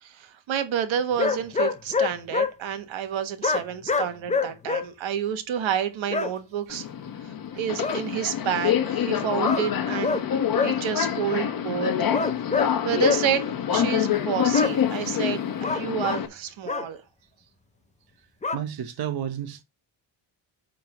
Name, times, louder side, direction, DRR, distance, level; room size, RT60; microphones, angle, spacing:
voice 1, 0.0-6.9 7.5-10.2 10.6-11.9 12.8-15.4 15.7-17.0, right 9 dB, 85° right, 1.4 m, -29 dB
sound 1, 1.2-2.5 3.4-4.8 6.1-6.3 7.8-8.0 9.4-9.7 10.0-10.2 10.5-10.7 12.1-12.7 13.0-13.2 14.5-14.7 15.6-16.2 16.7-16.9 18.4-18.6, left 4 dB, 15° left, 0.7 m, -25 dB
Subway metro underground, 6.7-16.3, left 9 dB, 50° left, 1.2 m, -26 dB
voice 2, 18.5-19.6, right 10 dB, 55° right, 1.0 m, -31 dB
8.8 x 3.9 x 5.9 m
wide cardioid pair, 165°, 45 cm